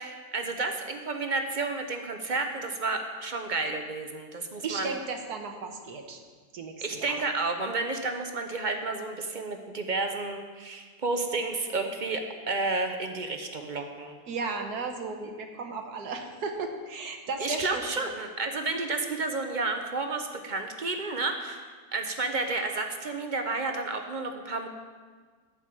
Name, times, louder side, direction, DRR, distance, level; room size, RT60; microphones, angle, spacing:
voice 1, 0.0-5.0 6.8-14.2 17.4-24.7, right 3 dB, 40° right, 5 dB, 0.7 m, -31 dB
voice 2, 4.6-6.2 6.5-7.1 14.3-18.1, right 4 dB, 75° right, 4 dB, 1.5 m, -35 dB
11.5 x 5.3 x 8.7 m, 1.5 s
omnidirectional pair, 1.7 m